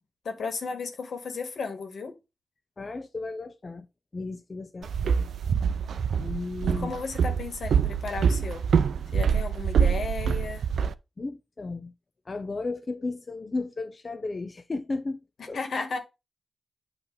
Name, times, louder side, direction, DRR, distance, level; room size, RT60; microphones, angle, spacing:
voice 1, 0.2-2.1 6.6-8.6 9.1-10.6 15.4-16.0, left 4 dB, 70° left, 1.6 m, -34 dB
voice 2, 2.8-3.9 4.1-5.3 6.2-6.9 11.2-11.9 12.3-15.2 15.5-15.6, left 3 dB, 35° left, 0.6 m, -34 dB
Walk footsteps, 4.8-10.9, right 7 dB, 85° right, 0.5 m, -25 dB
8.5 x 3.3 x 5.3 m
wide cardioid pair, 110°, 0 cm